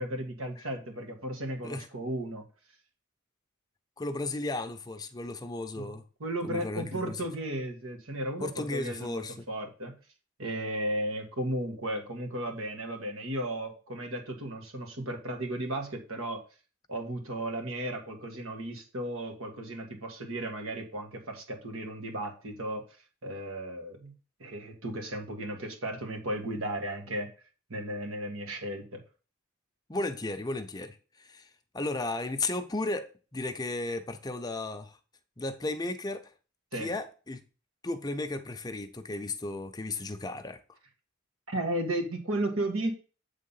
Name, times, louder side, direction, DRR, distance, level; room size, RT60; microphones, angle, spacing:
voice 1, 0.0-2.5 5.8-5.9 6.2-9.2 9.5-9.9 10.4-16.4 16.9-22.9 23.2-24.1 24.4-27.3 27.7-29.0 36.7-36.9 41.5-42.9, right 1 dB, 90° right, 1.7 m, -34 dB
voice 2, 4.0-6.0 6.4-7.3 8.4-9.4 29.9-35.0 35.4-36.3 36.7-37.4 37.8-40.6, left 2 dB, 20° left, 0.6 m, -35 dB
8.4 x 3.7 x 5.6 m
head